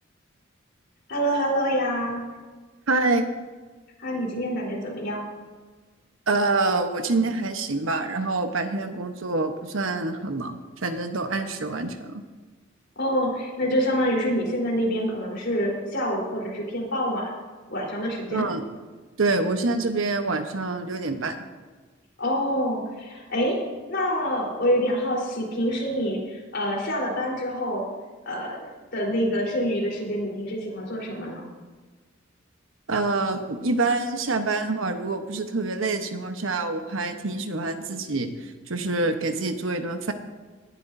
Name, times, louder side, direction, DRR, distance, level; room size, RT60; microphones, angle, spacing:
voice 1, 1.1-2.2 4.0-5.2 13.0-17.3 17.7-18.5 22.2-23.6 23.9-27.8 28.3-31.4, equal, 55° left, -2 dB, 4.0 m, -26 dB
voice 2, 2.9-3.2 6.3-12.2 18.3-18.6 19.2-21.4 32.9-40.1, right 3 dB, 85° right, 7 dB, 1.1 m, -26 dB
18.5 x 11.5 x 2.7 m, 1.3 s
head